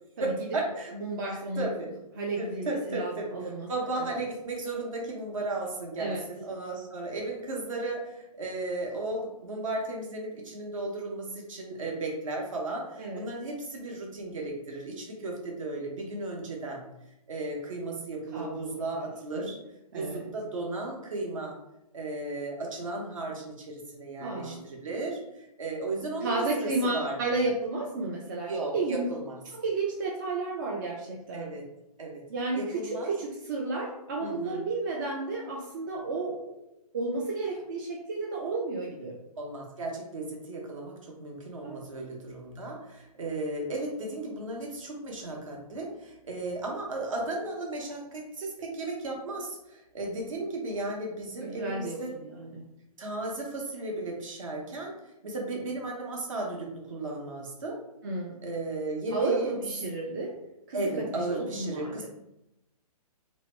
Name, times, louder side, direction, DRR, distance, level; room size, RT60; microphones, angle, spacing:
voice 1, 0.2-0.9 1.6-1.9 2.4-16.8 17.3-19.6 19.9-21.5 21.9-27.2 28.5-29.4 31.3-31.6 32.0-32.2 32.5-33.1 34.2-34.7 39.4-52.1 53.0-54.9 55.2-57.8 58.4-59.5 60.7-62.1, right 2 dB, 55° right, -1 dB, 0.8 m, -35 dB
voice 2, 0.9-1.7 2.2-4.2 6.0-6.2 13.0-13.3 18.3-19.5 19.9-20.3 24.2-24.6 26.2-29.1 29.5-31.5 32.3-36.6 36.9-39.2 41.6-41.8 51.4-52.7 58.0-58.4 59.1-60.4 60.7-62.1, right 3 dB, 30° right, -1 dB, 0.3 m, -32 dB
2.7 x 2.1 x 3.2 m, 0.86 s
figure-of-eight pair, 125°, 20 cm